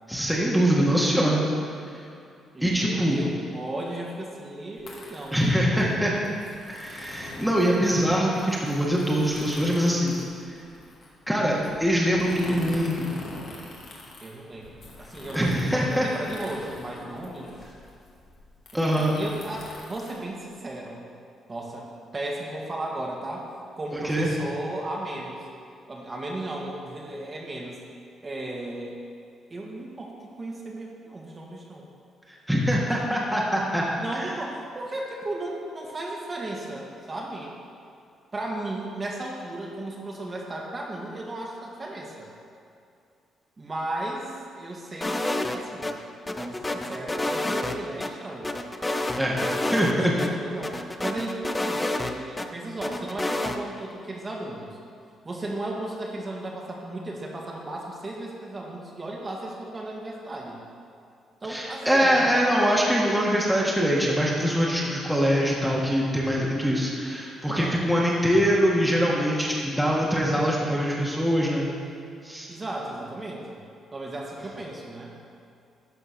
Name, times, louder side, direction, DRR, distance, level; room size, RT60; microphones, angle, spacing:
voice 1, 0.1-1.4 2.6-3.2 5.3-6.1 6.7-10.2 11.3-13.1 15.3-16.1 18.7-19.2 23.9-24.3 32.5-33.8 34.1-34.3 49.2-49.4 49.7-50.1 61.5-71.7 72.2-72.5, equal, 5° right, -4 dB, 1.6 m, -23 dB
voice 2, 2.5-5.9 14.2-17.5 18.7-21.0 21.5-23.5 23.7-25.5 25.9-27.8 28.2-28.9 29.5-31.9 34.0-37.5 38.3-42.3 43.6-46.0 46.4-48.6 49.4-54.8 55.2-60.6 61.4-62.4 67.5-67.8 72.5-73.6 73.9-75.1, right 2 dB, 30° right, -2 dB, 1.7 m, -35 dB
sound 1, 4.8-20.9, left 2 dB, 60° left, 2.0 m, -44 dB
sound 2, 45.0-45.9 46.3-48.1 48.4-49.9 50.2-50.3 50.6-52.5 52.8-53.6, left 2 dB, 15° left, 0.6 m, -28 dB
12.0 x 4.5 x 5.7 m, 2.5 s
cardioid pair, 90°, 0 cm